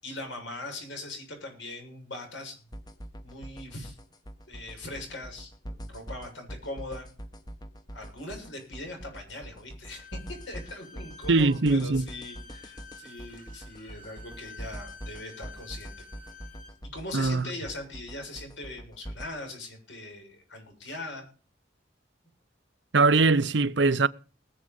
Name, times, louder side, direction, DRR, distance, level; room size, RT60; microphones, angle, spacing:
voice 1, 0.0-2.6 3.2-4.0 4.5-7.1 7.9-16.1 16.8-21.3, left 2 dB, 75° left, 7.1 m, -41 dB
sound 1, 2.7-19.3, equal, 20° left, 1.2 m, -43 dB
Bowed string instrument, 9.9-16.8, left 4 dB, 50° left, 4.8 m, -50 dB
voice 2, 11.3-12.1 17.1-17.5 22.9-24.1, right 3 dB, 70° right, 0.8 m, -22 dB
20.0 x 7.8 x 5.3 m
head